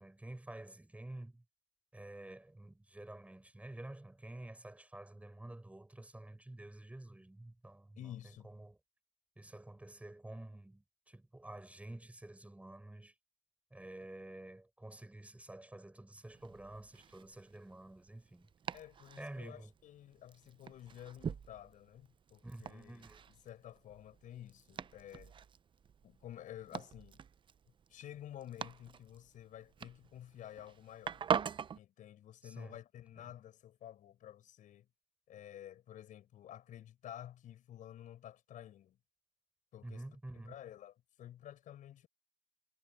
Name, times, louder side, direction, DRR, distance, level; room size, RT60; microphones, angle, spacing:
voice 1, 0.0-1.4 1.9-8.1 8.4-8.8 9.4-13.1 13.7-18.5 19.2-19.7 22.4-23.2 32.4-32.8 39.8-40.6, right 1 dB, 10° right, 6.5 m, -50 dB
voice 2, 8.0-8.5 18.7-23.0 23.4-25.3 26.0-27.2 27.9-31.3 31.8-34.9 35.3-39.0 39.7-40.0 40.4-42.1, left 11 dB, 60° left, 7.6 m, -51 dB
Domestic sounds home sounds, 16.2-31.8, right 7 dB, 35° right, 0.7 m, -44 dB
supercardioid pair, 90°, 15 cm